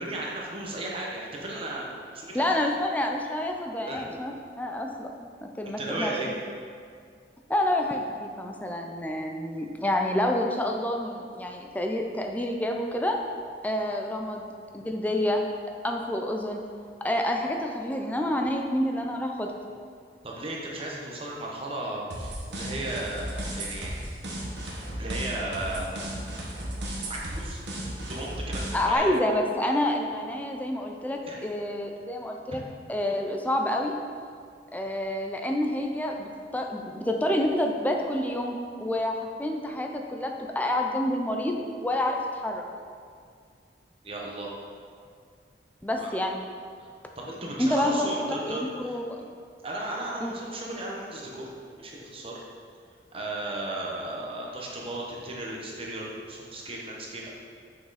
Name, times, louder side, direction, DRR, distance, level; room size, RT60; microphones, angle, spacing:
voice 1, 0.0-2.8 3.9-4.2 5.6-6.3 20.2-23.9 25.0-25.9 27.1-27.6 28.1-29.1 31.3-31.4 44.0-44.5 45.9-46.2 46.8-46.9 47.2-49.2 49.6-51.5 51.8-52.4 53.1-57.3, right 1 dB, 30° right, -3 dB, 1.1 m, -35 dB
voice 2, 2.3-6.1 7.5-13.2 13.6-14.4 14.7-15.5 15.8-16.6 17.0-19.5 28.7-32.6 32.9-34.0 34.7-42.6 45.8-46.4 47.6-49.2 50.2-50.3, left 1 dB, 10° left, 2 dB, 0.5 m, -28 dB
sound 1, 22.1-29.0, right 1 dB, 85° right, 1.4 m, -35 dB
6.3 x 5.7 x 4.1 m, 2.2 s
head